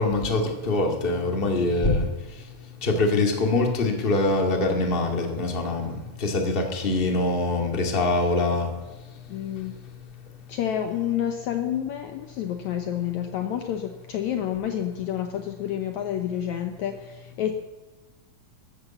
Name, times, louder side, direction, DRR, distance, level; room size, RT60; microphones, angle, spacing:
voice 1, 0.0-2.0 2.8-5.9 6.2-8.7, left 2 dB, 20° left, 3 dB, 1.7 m, -23 dB
voice 2, 9.3-9.8 10.5-17.5, left 10 dB, 70° left, 5 dB, 1.9 m, -29 dB
13.5 x 12.5 x 7.2 m, 1.1 s
omnidirectional pair, 3.9 m